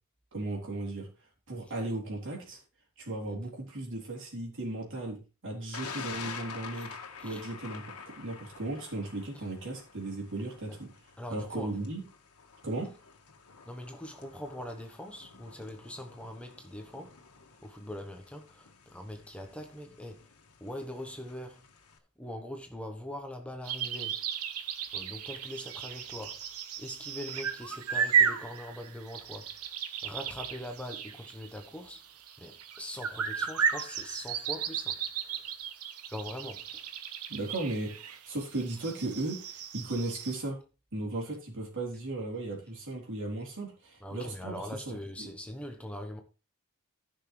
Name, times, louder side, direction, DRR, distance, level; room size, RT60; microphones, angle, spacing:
voice 1, 0.3-1.1 1.5-2.6 3.0-7.0 7.2-10.9 11.3-12.1 12.6-12.9 37.3-40.6 40.9-45.3, right 2 dB, 60° right, 3.6 m, -36 dB
Thunder, 5.7-22.0, left 5 dB, 85° left, 1.7 m, -48 dB
voice 2, 11.2-11.7 13.7-17.1 17.6-20.2 20.6-21.6 22.2-24.2 24.9-26.4 26.8-29.5 30.0-32.0 32.4-35.0 35.2-35.4 36.1-36.7 44.0-46.2, left 1 dB, 5° left, 1.1 m, -42 dB
sound 1, 23.6-40.4, right 7 dB, 80° right, 1.1 m, -34 dB
14.5 x 6.2 x 3.2 m
head